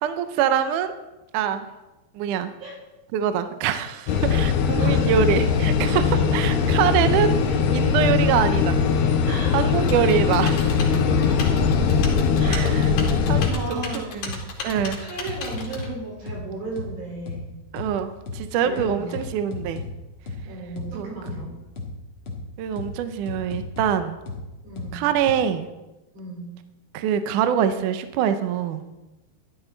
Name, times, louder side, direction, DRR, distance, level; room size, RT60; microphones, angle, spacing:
voice 1, 0.0-1.0 1.3-1.7 2.1-2.5 3.1-8.8 9.5-10.9 11.5-11.6 12.5-13.8 14.1-14.4 14.6-15.0 17.7-19.8 20.9-21.1 22.6-24.2 24.9-25.7 26.9-28.8, right 8 dB, 80° right, 10 dB, 1.8 m, -24 dB
sound 1, 4.1-13.5, left 6 dB, 85° left, 3.0 m, -20 dB
voice 2, 4.8-5.1 9.2-10.1 11.2-11.7 12.4-12.6 12.9-13.0 13.4-14.2 15.0-17.6 18.6-19.2 20.4-21.6 24.6-25.0 26.1-26.5, right 3 dB, 60° right, -3 dB, 5.9 m, -35 dB
Typing, 9.9-15.9, left 4 dB, 60° left, 3.7 m, -36 dB
sound 2, 10.3-10.4 10.8-11.9 12.3-12.4 12.8-12.9 13.3-13.4 13.8-13.9 14.3-14.4 14.8-14.9 15.3-15.9 16.3-16.4 16.8-16.9 17.3-17.4 17.8-17.9 18.3-18.4 18.8-19.9 20.3-20.4 20.8-20.9 21.3-21.4 21.8-21.9 22.3-22.4 22.8-22.9 23.3-23.9 24.3-24.4 24.8-24.9 25.3-25.4, left 4 dB, 45° left, 1.9 m, -33 dB
13.5 x 11.5 x 3.9 m, 1.0 s
omnidirectional pair, 4.5 m